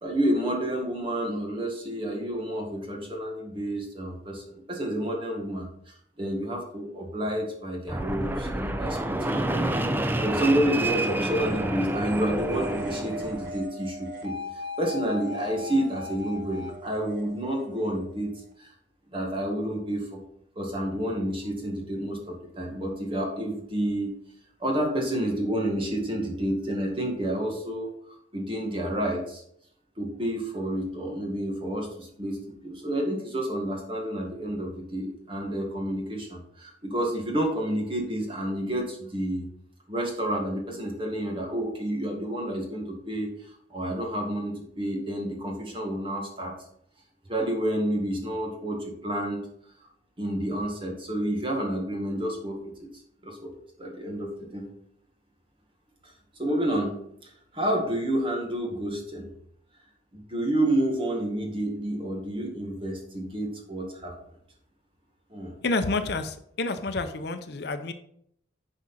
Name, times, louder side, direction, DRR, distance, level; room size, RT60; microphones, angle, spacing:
voice 1, 0.0-18.7 19.1-20.2 20.6-24.1 24.6-29.4 30.0-39.5 39.9-46.5 47.3-49.5 49.8-49.9 50.2-52.9 53.2-53.5 53.8-54.7 56.0-56.1 56.4-59.3 60.1-64.1 65.3-65.6, right 1 dB, 30° right, 1 dB, 1.9 m, -30 dB
Fixed-wing aircraft airplane, 7.9-13.5, right 1 dB, 10° right, 0.5 m, -29 dB
sound 1, 11.0-18.5, left 2 dB, 60° right, 1.3 m, -39 dB
voice 2, 65.6-67.9, left 3 dB, 55° left, 9 dB, 0.6 m, -29 dB
9.9 x 4.9 x 4.2 m, 0.69 s
head